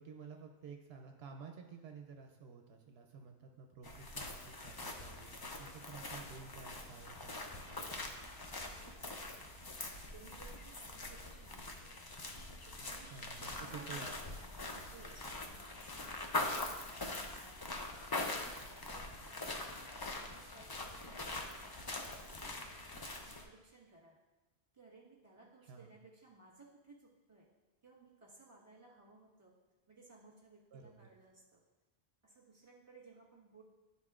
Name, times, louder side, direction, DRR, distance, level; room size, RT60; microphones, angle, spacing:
voice 1, 0.0-8.1 13.1-14.4 16.3-16.5 25.7-26.0 30.7-31.1, right 5 dB, 80° right, 4 dB, 0.8 m, -52 dB
sound 1, 3.8-23.4, left 2 dB, 30° left, 0.4 m, -43 dB
voice 2, 8.5-9.5 10.0-11.9 12.7-13.1 13.4-14.1 14.7-17.6 18.2-19.8 20.2-24.1 24.7-27.5 27.8-29.5 29.9-31.6 32.2-33.7, right 3 dB, 30° right, -4 dB, 1.5 m, -60 dB
11.5 x 4.0 x 2.4 m, 1.2 s
omnidirectional pair, 1.0 m